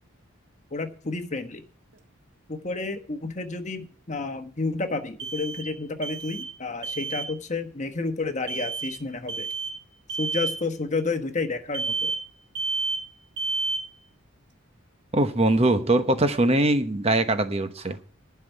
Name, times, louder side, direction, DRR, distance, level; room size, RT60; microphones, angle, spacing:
voice 1, 0.7-1.6 2.5-9.5 10.2-12.1, left 3 dB, 35° left, 8 dB, 1.1 m, -30 dB
sound 1, 1.9-2.0 5.2-5.8 6.0-6.6 6.8-7.3 8.5-9.0 9.3-9.8 10.1-10.6 11.7-12.3 12.5-13.1 13.4-13.9, right 4 dB, 55° right, 1.5 m, -30 dB
voice 2, 15.1-18.0, right 1 dB, 30° right, 9 dB, 0.9 m, -22 dB
11.5 x 5.8 x 9.0 m, 0.40 s
head